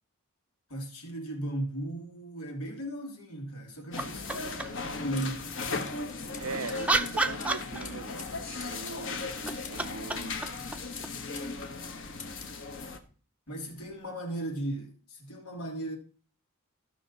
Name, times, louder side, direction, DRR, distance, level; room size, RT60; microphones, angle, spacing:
voice 1, 0.7-6.0 13.5-16.0, right 1 dB, 85° left, 2.8 m, -37 dB
sound 1, 3.9-13.0, left 3 dB, 55° left, 1.4 m, -37 dB
sound 2, 4.0-4.9 6.3-8.2 9.3-11.9 13.9-14.0, right 3 dB, 5° right, 0.5 m, -33 dB
sound 3, 5.2-11.5 11.8-12.6, left 5 dB, 35° left, 2.0 m, -48 dB
voice 2, 6.4-10.4, right 4 dB, 80° right, 0.6 m, -41 dB
14.0 x 6.2 x 4.1 m
head